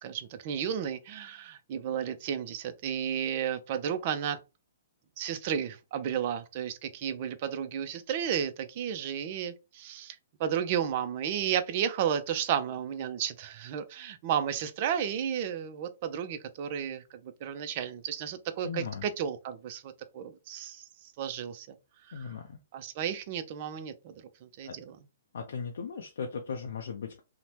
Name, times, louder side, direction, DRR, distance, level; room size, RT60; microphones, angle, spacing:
voice 1, 0.0-4.4 5.2-20.9 21.2-21.7 22.1-22.3 22.7-25.0, right 8 dB, 45° right, 0.4 m, -33 dB
voice 2, 18.6-19.0 22.1-22.6 24.6-24.8 25.3-27.2, left 6 dB, 70° left, 0.4 m, -37 dB
2.7 x 2.1 x 3.1 m
hypercardioid pair, 130°, 0 cm